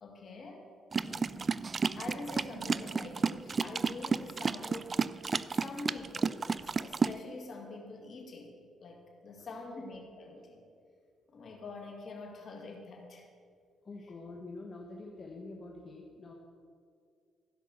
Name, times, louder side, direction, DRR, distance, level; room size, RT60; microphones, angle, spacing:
voice 1, 0.0-1.6 2.0-5.0 5.5-10.6 11.3-13.3 14.0-14.1, left 3 dB, 55° left, 2 dB, 2.2 m, -46 dB
sound 1, 0.9-7.2, right 5 dB, 35° right, 0.3 m, -32 dB
voice 2, 13.8-16.3, left 3 dB, 40° left, 0 dB, 1.3 m, -46 dB
15.0 x 5.5 x 6.6 m, 2.2 s
cardioid pair, 90°, 0 cm